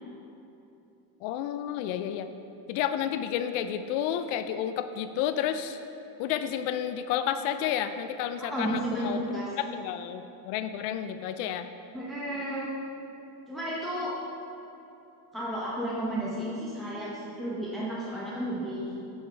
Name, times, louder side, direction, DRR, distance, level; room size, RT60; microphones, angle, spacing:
voice 1, 1.2-2.3 2.7-5.8 6.2-9.2 9.6-11.7, left 10 dB, 80° left, 10 dB, 0.6 m, -31 dB
voice 2, 8.4-9.5 11.9-12.7 13.5-14.2 15.3-19.1, right 1 dB, ahead, -6 dB, 0.8 m, -33 dB
9.0 x 5.5 x 4.4 m, 2.9 s
cardioid pair, 130°, 48 cm